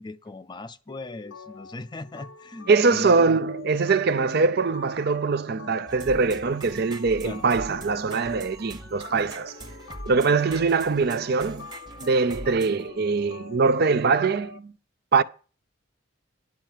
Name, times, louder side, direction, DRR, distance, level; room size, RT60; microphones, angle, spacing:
voice 1, 0.0-3.4 7.2-7.4, left 2 dB, 20° left, 0.4 m, -39 dB
sound 1, 0.9-14.6, left 5 dB, 75° left, 0.9 m, -45 dB
voice 2, 2.7-9.6 10.1-11.7 12.0-14.7 15.1-15.2, right 4 dB, 50° right, 0.5 m, -22 dB
sound 2, 5.9-12.9, right 1 dB, 20° right, 1.2 m, -42 dB
10.5 x 5.6 x 7.2 m
head